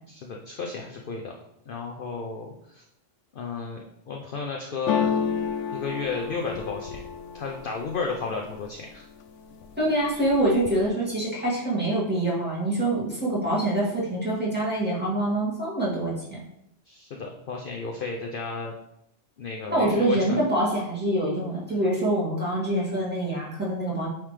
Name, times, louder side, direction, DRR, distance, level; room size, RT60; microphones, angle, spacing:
voice 1, 0.1-1.3 1.7-2.8 3.3-5.1 5.7-7.0 7.3-9.0 16.9-18.7 19.4-20.4, left 4 dB, 55° left, 1 dB, 0.7 m, -33 dB
sound 1, 4.9-8.7 9.2-9.8 10.1-10.9, left 7 dB, 80° left, 0.9 m, -30 dB
voice 2, 9.8-16.4 19.7-24.1, right 1 dB, 10° right, -7 dB, 2.1 m, -25 dB
8.7 x 3.4 x 3.3 m, 0.78 s
omnidirectional pair, 1.3 m